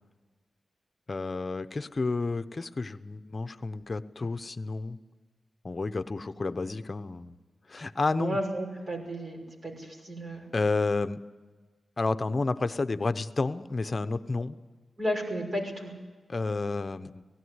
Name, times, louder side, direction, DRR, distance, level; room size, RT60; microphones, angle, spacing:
voice 1, 1.1-5.0 5.6-7.3 7.7-8.4 10.5-11.2 12.0-14.6 16.3-17.2, left 3 dB, 40° left, 10 dB, 0.8 m, -30 dB
voice 2, 8.1-10.4 15.0-15.9, equal, 45° right, 0 dB, 6.1 m, -33 dB
18.0 x 16.0 x 9.6 m, 1.4 s
cardioid pair, 80°, 0 cm